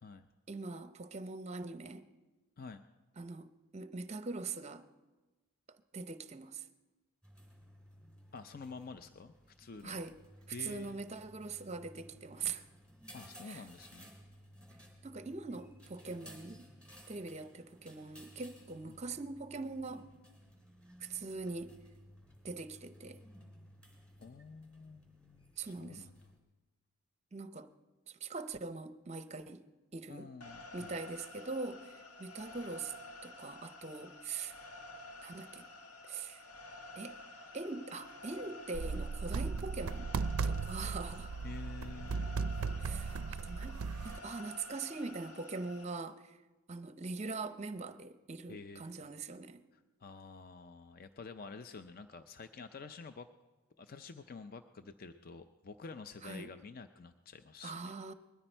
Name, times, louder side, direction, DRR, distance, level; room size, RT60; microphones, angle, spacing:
voice 1, 0.5-2.1 3.2-4.9 5.9-6.7 9.8-10.1 10.5-12.6 13.4-13.6 15.0-16.7 17.1-20.1 21.0-21.7 22.4-23.2 25.6-26.1 27.3-27.7 28.1-29.6 29.9-30.3 30.7-32.9 33.2-34.6 35.2-35.7 36.0-36.4 37.0-37.2 37.5-40.1 40.4-41.3 42.8-43.8 44.0-46.4 46.7-49.6 56.2-56.5 57.6-58.1, right 3 dB, 30° right, 0.6 m, -42 dB
sound 1, 7.2-26.4, equal, 5° left, 3.1 m, -58 dB
voice 2, 8.3-10.0 10.5-11.0 13.1-14.1 18.9-19.0 24.2-26.2 30.1-30.9 41.4-42.4 48.5-48.9 50.0-53.3 53.8-58.0, left 4 dB, 40° left, 0.4 m, -49 dB
sound 2, 30.4-45.8, left 2 dB, 85° left, 1.7 m, -51 dB
sound 3, 38.7-44.2, right 4 dB, 75° right, 0.4 m, -37 dB
20.5 x 14.0 x 4.5 m
head